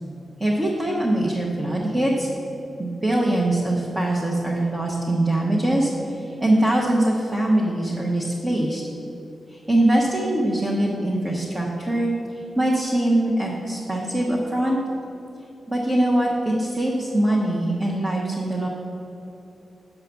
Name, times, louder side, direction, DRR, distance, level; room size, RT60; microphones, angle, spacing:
voice 1, 0.4-2.3 2.8-8.8 9.5-14.8 15.7-18.7, right 1 dB, 20° right, -3 dB, 0.9 m, -22 dB
6.9 x 4.8 x 6.9 m, 3.0 s
wide cardioid pair, 125°, 0 cm